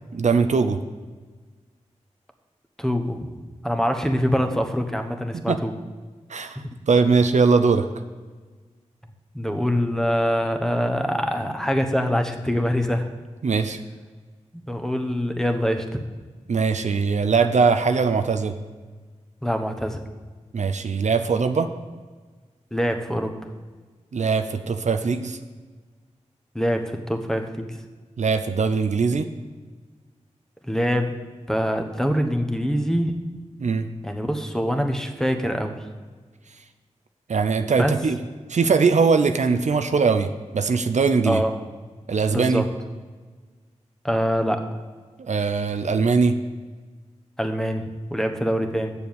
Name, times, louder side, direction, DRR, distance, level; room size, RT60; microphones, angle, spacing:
voice 1, 0.1-0.8 5.3-5.6 6.3-7.9 13.4-13.8 16.5-18.5 20.5-21.7 24.1-25.4 28.2-29.3 33.6-33.9 37.3-38.2 38.5-40.3 40.5-41.4 42.1-42.6 45.2-46.3, right 5 dB, 70° right, 8 dB, 0.6 m, -21 dB
voice 2, 2.8-3.3 3.6-5.7 6.5-6.8 9.3-13.0 14.7-16.0 19.4-20.0 22.7-23.3 26.5-27.8 30.7-31.1 31.5-33.1 34.0-35.8 37.8-37.9 41.2-41.5 42.3-42.7 44.0-44.6 47.4-48.9, equal, 5° left, 5 dB, 1.1 m, -24 dB
7.9 x 7.0 x 7.2 m, 1.4 s
cardioid pair, 45°, 13 cm